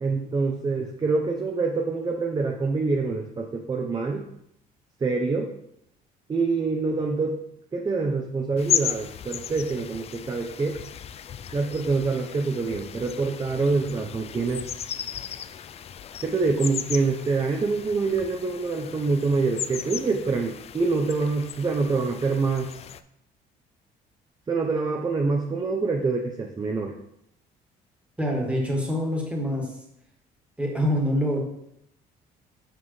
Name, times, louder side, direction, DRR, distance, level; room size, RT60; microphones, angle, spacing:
voice 1, 0.0-4.2 5.0-5.5 6.3-7.4 7.7-10.8 11.5-14.9 16.2-22.7 24.5-26.9, right 4 dB, 25° right, 2 dB, 0.7 m, -26 dB
sound 1, 8.6-23.0, left 9 dB, 40° left, 0.4 m, -35 dB
voice 2, 28.2-29.8 30.6-31.4, equal, 5° right, -1 dB, 1.9 m, -25 dB
7.4 x 5.5 x 3.2 m, 0.76 s
cardioid pair, 110°, 17 cm